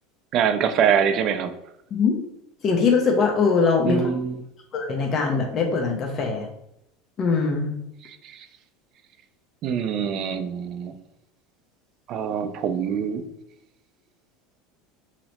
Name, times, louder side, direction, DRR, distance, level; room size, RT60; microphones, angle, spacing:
voice 1, 0.3-1.5 3.9-4.4 8.0-8.5 9.6-10.9 12.1-13.2, right 7 dB, 50° right, 9 dB, 0.3 m, -24 dB
voice 2, 2.6-4.1 4.7-6.5 7.2-7.7, left 4 dB, 40° left, 0 dB, 0.5 m, -22 dB
2.8 x 2.0 x 4.0 m, 0.81 s
supercardioid pair, 105°, 0 cm